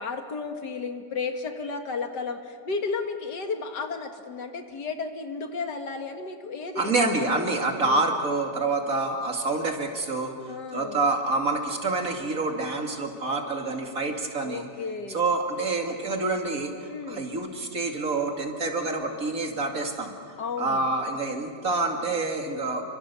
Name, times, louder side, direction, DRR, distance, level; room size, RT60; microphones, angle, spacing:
voice 1, 0.0-6.9 7.2-7.3 7.7-8.0 10.5-11.0 14.4-15.2 16.9-17.3 20.4-20.9, left 4 dB, 90° left, 6 dB, 2.4 m, -33 dB
voice 2, 6.8-14.7 15.1-20.1 20.6-22.8, right 3 dB, 55° right, 3 dB, 2.9 m, -27 dB
28.5 x 25.0 x 7.0 m, 2.1 s
omnidirectional pair, 1.8 m